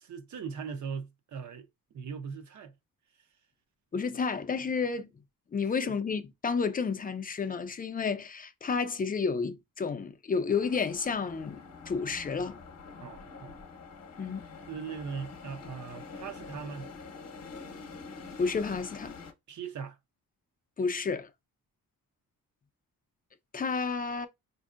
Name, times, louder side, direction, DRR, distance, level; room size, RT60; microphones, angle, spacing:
voice 1, 0.0-2.7 5.8-5.9 13.0-13.6 14.7-16.9 19.5-20.0, right 6 dB, 55° right, 0.7 m, -40 dB
voice 2, 3.9-5.1 5.5-12.6 14.2-14.4 18.4-19.2 20.8-21.3 23.5-24.3, left 5 dB, 25° left, 0.5 m, -31 dB
sound 1, 10.5-19.3, left 4 dB, 45° left, 0.8 m, -46 dB
5.1 x 2.6 x 2.5 m
wide cardioid pair, 140°, 35 cm